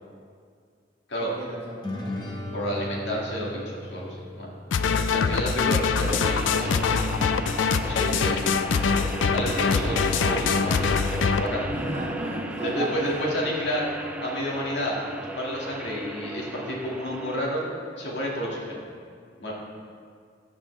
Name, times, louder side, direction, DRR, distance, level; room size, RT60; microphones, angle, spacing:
voice 1, 1.2-2.9 11.7-13.3, right 1 dB, 35° right, -4 dB, 1.8 m, -35 dB
sound 1, 1.8-5.4, left 1 dB, 25° left, 1.0 m, -37 dB
voice 2, 2.5-4.5 5.1-7.2 7.7-8.4 9.3-11.7 12.6-13.9 14.2-15.0 15.4-17.6 18.0-18.8 19.4-19.5, equal, 65° left, -4 dB, 2.0 m, -30 dB
sound 2, 4.7-11.5, left 5 dB, 90° left, 0.4 m, -24 dB
sound 3, 5.9-17.4, right 1 dB, 5° right, 0.3 m, -35 dB
15.5 x 6.0 x 3.3 m, 2.1 s
head